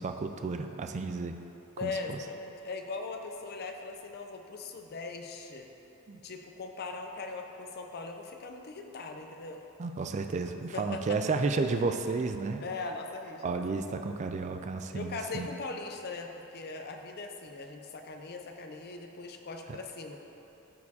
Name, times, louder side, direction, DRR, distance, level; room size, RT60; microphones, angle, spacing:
voice 1, 0.0-1.3 1.8-2.2 6.1-6.2 9.8-12.6 13.4-15.5 19.7-19.8, right 4 dB, 30° right, 6 dB, 0.3 m, -32 dB
voice 2, 1.8-5.7 6.2-9.6 10.7-11.2 12.6-14.0 14.9-20.2, left 3 dB, 45° left, 4 dB, 0.5 m, -40 dB
13.0 x 4.4 x 2.8 m, 3.0 s
head